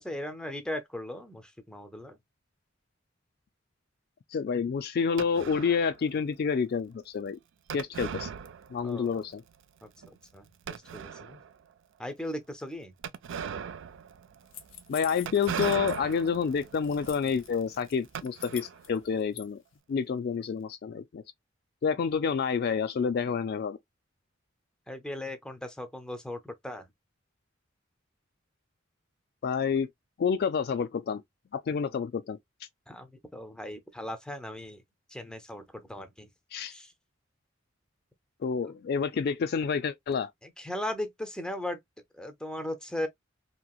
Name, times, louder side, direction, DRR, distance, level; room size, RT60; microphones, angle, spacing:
voice 1, 0.0-2.2 8.8-9.2 9.8-11.4 12.0-12.9 24.9-26.9 32.9-34.8 35.1-36.3 36.7-36.9 40.4-41.8 42.1-43.1, left 1 dB, 5° left, 0.5 m, -38 dB
voice 2, 4.3-7.4 7.7-8.3 8.7-9.4 14.9-19.6 19.9-21.2 21.8-23.8 29.4-29.9 30.2-31.2 31.5-32.4 36.5-36.7 38.4-40.3, left 6 dB, 55° left, 0.3 m, -29 dB
sound 1, 5.2-6.0 7.7-9.1 9.3-9.4 10.0-10.1 10.7-11.5 13.0-18.9, right 7 dB, 65° right, 0.4 m, -38 dB
sound 2, 14.5-16.3 16.6-17.5 17.9-19.4, left 10 dB, 85° left, 0.7 m, -45 dB
3.0 x 2.8 x 2.2 m
head